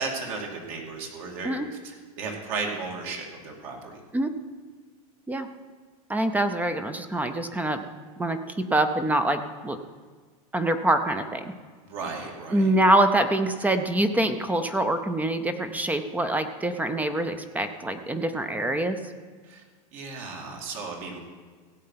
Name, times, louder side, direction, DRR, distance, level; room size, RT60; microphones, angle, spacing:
voice 1, 0.0-1.6 1.8-4.0 11.8-12.7 19.4-19.6 19.9-21.2, right 4 dB, 60° right, 0 dB, 2.6 m, -34 dB
voice 2, 6.1-7.8 8.2-9.8 10.5-11.5 12.5-19.0, right 1 dB, 10° right, 9 dB, 0.5 m, -25 dB
16.0 x 7.7 x 5.7 m, 1.5 s
supercardioid pair, 145°, 19 cm